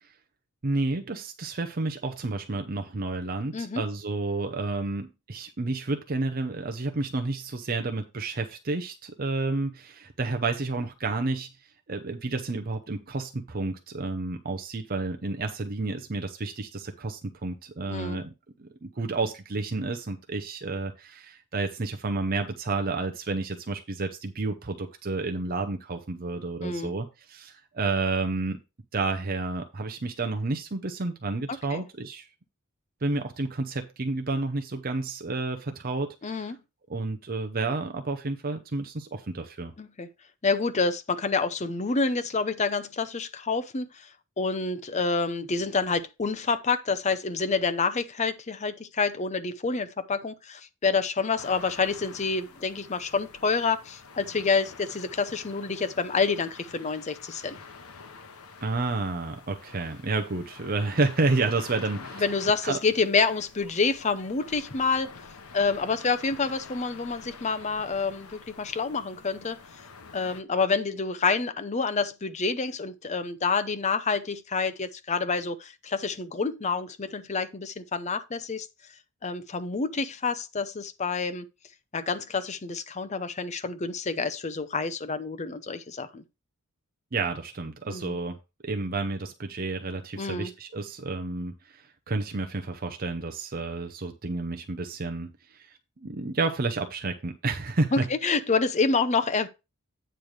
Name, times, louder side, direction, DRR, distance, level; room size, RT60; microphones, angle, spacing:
voice 1, 0.6-11.5 11.9-18.3 18.6-28.6 28.9-32.3 33.0-36.5 36.9-39.7 58.6-62.2 62.6-62.8 87.1-88.4 88.6-98.1, right 3 dB, 40° right, 0.7 m, -30 dB
voice 2, 17.9-18.2 26.6-26.9 31.7-31.8 36.2-36.6 39.8-40.1 40.4-44.1 44.4-57.6 62.2-65.1 65.5-69.6 70.1-78.7 79.2-81.5 81.9-86.2 87.9-88.2 90.2-90.5 97.9-99.5, left 4 dB, 30° left, 0.6 m, -28 dB
sound 1, 51.4-70.4, left 4 dB, 75° left, 0.9 m, -47 dB
8.9 x 3.2 x 6.4 m
head